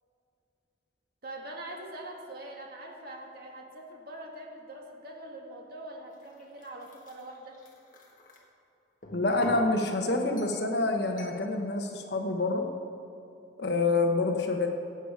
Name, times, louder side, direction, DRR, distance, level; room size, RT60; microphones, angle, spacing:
voice 1, 1.2-7.6, right 1 dB, 50° right, -1 dB, 1.7 m, -43 dB
sound 1, 6.1-8.4 9.0-9.7 10.4-10.7 11.2-11.4, left 1 dB, 45° left, 1.5 m, -45 dB
voice 2, 9.1-12.7 13.6-14.7, left 2 dB, 60° left, 3 dB, 1.2 m, -27 dB
16.5 x 8.2 x 4.9 m, 2.7 s
head